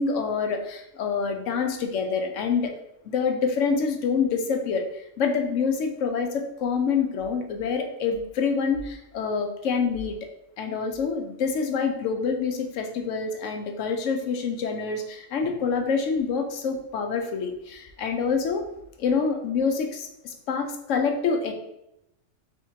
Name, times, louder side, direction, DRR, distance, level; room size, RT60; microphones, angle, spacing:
voice 1, 0.0-2.8 3.0-10.2 10.6-18.6 19.0-21.5, left 5 dB, 75° left, 5 dB, 1.0 m, -26 dB
4.9 x 3.5 x 2.7 m, 0.84 s
omnidirectional pair, 1.3 m